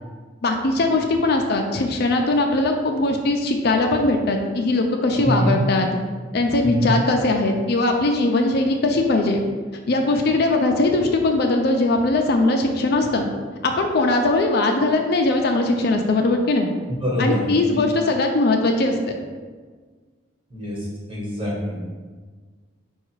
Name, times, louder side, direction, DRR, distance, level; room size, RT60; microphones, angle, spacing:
voice 1, 0.4-6.0 6.3-9.4 9.9-13.3 13.6-16.7 17.2-19.0, left 2 dB, 55° left, 3 dB, 0.4 m, -20 dB
voice 2, 5.2-5.6 6.6-6.9 17.0-17.8 20.5-22.0, equal, 25° right, -5 dB, 1.3 m, -25 dB
4.7 x 2.3 x 4.6 m, 1.5 s
head